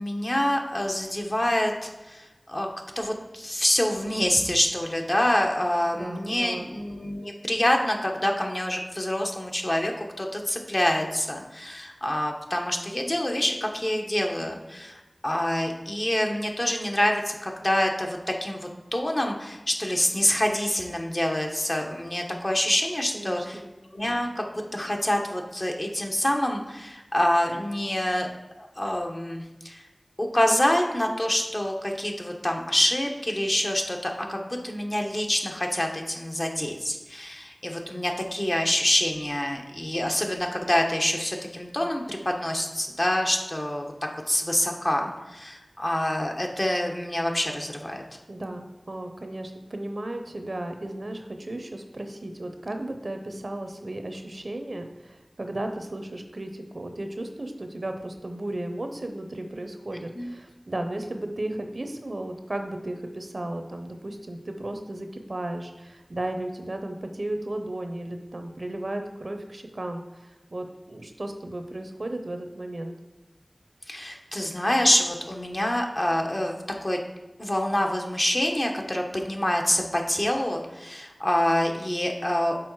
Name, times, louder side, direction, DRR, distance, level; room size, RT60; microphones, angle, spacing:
voice 1, 0.0-2.7 3.0-23.6 23.9-24.4 24.7-28.3 28.6-29.8 30.2-43.9 44.3-48.0 60.1-60.3 73.9-77.0 77.4-82.6, left 1 dB, 40° left, 1 dB, 1.0 m, -26 dB
voice 2, 5.9-6.7 23.1-23.6 48.3-70.0 70.5-72.9, right 1 dB, 70° right, 6 dB, 0.7 m, -35 dB
6.2 x 4.0 x 4.6 m, 1.1 s
wide cardioid pair, 40°, 0 cm